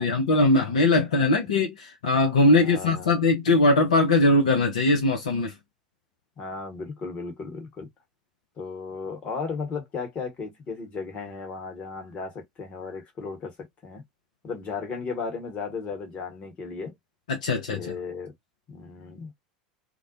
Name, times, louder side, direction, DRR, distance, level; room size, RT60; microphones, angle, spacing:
voice 1, 0.0-5.5 17.3-17.9, left 2 dB, 65° left, 0.6 m, -21 dB
voice 2, 0.9-1.3 2.4-3.1 6.4-7.9 8.6-13.5 13.8-14.0 14.4-16.9 17.7-18.3 18.7-19.3, left 4 dB, 30° left, 1.2 m, -35 dB
2.4 x 2.1 x 2.6 m
figure-of-eight pair, 80°, 4 cm